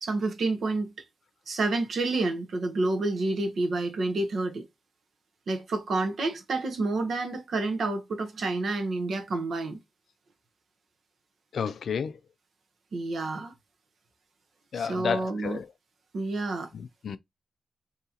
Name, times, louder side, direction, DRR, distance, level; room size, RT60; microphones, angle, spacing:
voice 1, 0.0-0.9 1.5-4.6 5.5-9.8 12.9-13.5 14.7-15.6 16.1-16.7, right 2 dB, 60° right, 0.8 m, -29 dB
voice 2, 11.5-12.1 14.7-15.7 16.7-17.2, left 6 dB, 65° left, 0.3 m, -31 dB
3.7 x 2.8 x 2.7 m
wide cardioid pair, 155°, 0 cm